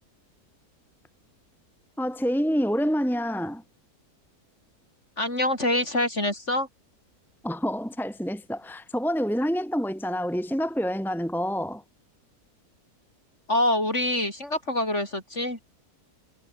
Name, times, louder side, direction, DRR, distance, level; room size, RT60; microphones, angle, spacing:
voice 1, 2.0-3.6 7.4-11.8, equal, ahead, 2.6 m, -27 dB
voice 2, 5.2-6.7 13.5-15.6, left 1 dB, 45° left, 7.7 m, -25 dB
omnidirectional pair, 1.7 m